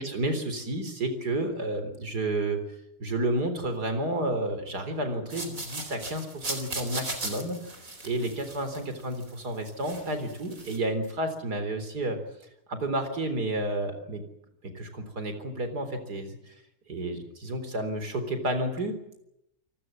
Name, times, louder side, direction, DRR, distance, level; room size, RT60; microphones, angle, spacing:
voice 1, 0.0-2.6 3.0-7.6 8.0-12.2 12.7-14.2 14.6-16.5 16.9-19.2, right 1 dB, 75° right, 9 dB, 4.3 m, -31 dB
sound 1, 5.3-9.4 9.7-10.8, right 2 dB, 55° right, 4.7 m, -37 dB
28.5 x 19.0 x 7.6 m, 0.83 s
omnidirectional pair, 1.7 m